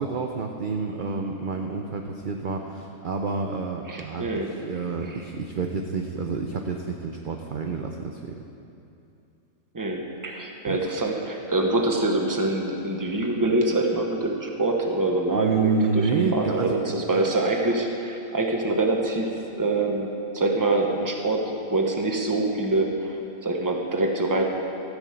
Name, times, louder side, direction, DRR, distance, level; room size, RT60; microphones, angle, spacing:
voice 1, 0.0-8.3 10.6-10.8 15.3-16.8 17.1-17.2, right 4 dB, 50° right, 3 dB, 0.6 m, -28 dB
voice 2, 3.9-4.5 5.1-5.2 9.7-21.4 21.7-24.4, right 2 dB, 15° right, 2 dB, 0.9 m, -25 dB
15.0 x 6.2 x 7.7 m, 2.7 s
omnidirectional pair, 1.6 m